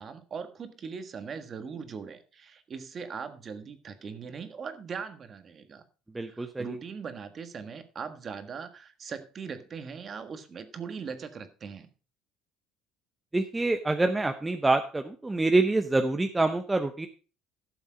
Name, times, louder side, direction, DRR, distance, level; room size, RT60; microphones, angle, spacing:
voice 1, 0.0-5.8 6.2-11.9, right 6 dB, 35° right, 9 dB, 1.5 m, -40 dB
voice 2, 6.1-6.7 13.3-17.1, right 2 dB, 10° right, 6 dB, 0.8 m, -26 dB
12.5 x 7.1 x 5.1 m, 0.35 s
cardioid pair, 120°, 0 cm